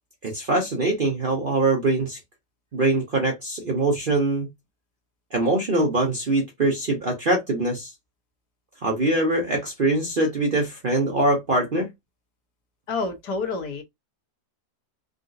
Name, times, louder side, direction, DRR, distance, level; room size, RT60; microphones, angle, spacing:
voice 1, 0.2-2.2 2.7-4.5 5.3-7.9 8.8-11.9, right 2 dB, 55° right, 0.5 m, -23 dB
voice 2, 12.9-13.8, left 4 dB, 65° left, 1.4 m, -28 dB
3.7 x 2.3 x 2.5 m
omnidirectional pair, 2.0 m